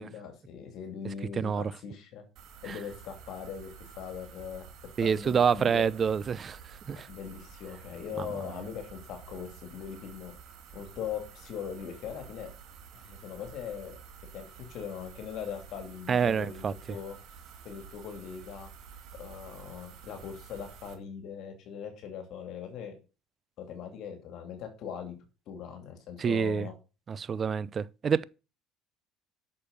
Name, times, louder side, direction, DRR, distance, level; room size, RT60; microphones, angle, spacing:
voice 1, 0.0-2.2 2.6-5.9 6.9-10.3 10.7-12.5 12.9-14.0 14.3-17.2 17.6-18.7 19.1-22.9 23.6-25.1 25.5-26.7, left 7 dB, 60° left, 2.8 m, -40 dB
sound 1, 2.4-20.9, right 7 dB, 65° right, 2.5 m, -50 dB
voice 2, 5.0-6.6 6.9-7.1 8.2-8.3 16.1-16.7 26.2-26.7 27.1-28.2, right 6 dB, 35° right, 0.7 m, -27 dB
8.7 x 6.7 x 6.7 m
supercardioid pair, 95°, 0 cm